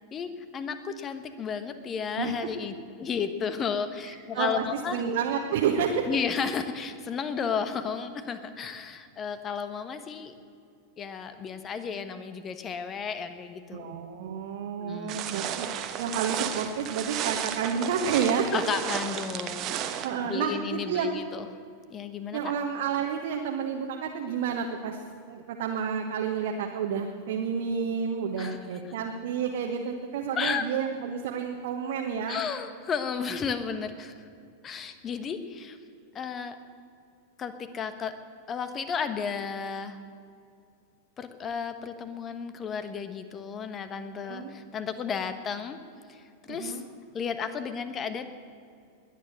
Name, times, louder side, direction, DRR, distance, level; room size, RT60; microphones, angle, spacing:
voice 1, 0.1-5.0 6.0-10.3 11.0-13.9 14.8-15.2 18.5-21.5 21.9-22.4 28.4-28.6 30.4-30.6 32.3-34.2 34.6-35.8 36.1-36.6 37.4-38.1 38.5-40.0 41.2-45.8 46.1-46.8 47.1-48.3, left 6 dB, 25° left, 10 dB, 1.2 m, -33 dB
voice 2, 4.1-6.0 13.7-15.7 16.0-18.6 20.0-21.2 22.3-25.0 25.3-32.4 44.2-44.5 46.5-46.8, right 7 dB, 55° right, 2 dB, 1.2 m, -30 dB
sound 1, 15.1-20.1, right 10 dB, 35° right, 1.2 m, -33 dB
20.5 x 9.7 x 6.6 m, 2.4 s
figure-of-eight pair, 90°, 0 cm